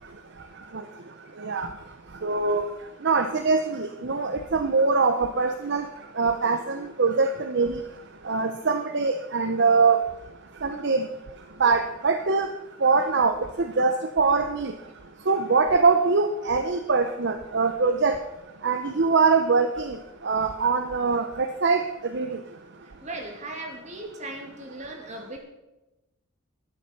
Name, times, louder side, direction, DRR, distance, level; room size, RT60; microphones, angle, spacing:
voice 1, 2.2-2.7 3.0-5.8 6.2-7.8 8.3-10.0 10.6-11.0 11.6-12.5 12.8-14.7 15.3-18.1 18.6-20.0 20.2-21.8 22.1-22.3, right 4 dB, 50° right, 7 dB, 0.7 m, -23 dB
voice 2, 23.0-25.4, right 2 dB, 30° right, 2 dB, 2.4 m, -37 dB
12.0 x 10.5 x 5.8 m, 0.98 s
head